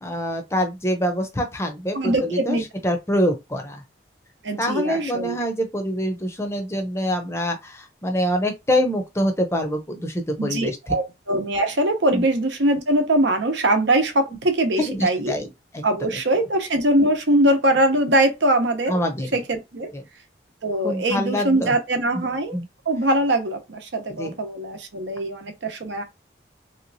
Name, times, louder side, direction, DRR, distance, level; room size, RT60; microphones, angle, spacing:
voice 1, 0.0-3.8 4.6-10.8 12.1-12.2 14.8-15.5 15.7-15.8 16.1-16.2 18.9-19.4 19.9-20.0 20.8-21.7 22.5-22.6 24.1-24.3, equal, 15° left, 0.6 m, -25 dB
voice 2, 1.9-2.6 4.4-5.4 10.4-15.3 15.8-19.0 19.3-19.9 20.6-22.6 22.9-26.0, right 1 dB, 80° right, 0.8 m, -22 dB
3.2 x 2.9 x 2.7 m
head